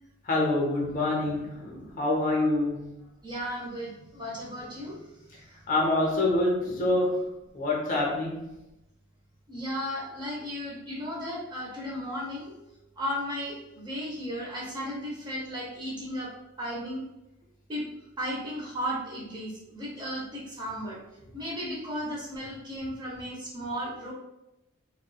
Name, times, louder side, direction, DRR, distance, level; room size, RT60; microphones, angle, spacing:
voice 1, 0.2-3.0 5.7-8.5, left 2 dB, 40° left, -3 dB, 0.6 m, -26 dB
voice 2, 3.2-5.0 5.4-5.6 9.5-12.5 13.0-16.3 16.6-17.0 17.7-17.8 18.2-21.0 21.3-24.1, equal, 20° right, -5 dB, 0.6 m, -35 dB
2.8 x 2.2 x 2.2 m, 0.92 s
head